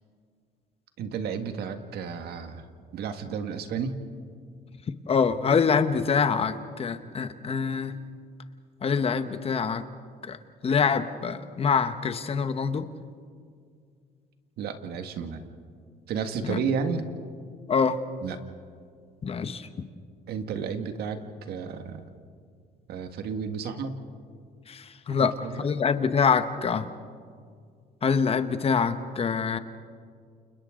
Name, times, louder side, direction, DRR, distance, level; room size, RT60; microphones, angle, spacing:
voice 1, 1.0-2.7 2.9-3.9 14.6-15.4 16.1-17.1 18.2-18.4 20.3-22.1 22.9-23.9 25.2-25.6, right 6 dB, 70° right, 7 dB, 1.9 m, -32 dB
voice 2, 5.1-8.0 8.8-9.8 10.2-10.4 10.6-12.9 16.4-16.6 17.7-18.0 19.2-19.7 24.7-26.9 28.0-29.6, left 6 dB, 35° left, 10 dB, 1.2 m, -25 dB
29.5 x 29.5 x 3.8 m, 2.1 s
cardioid pair, 110°, 17 cm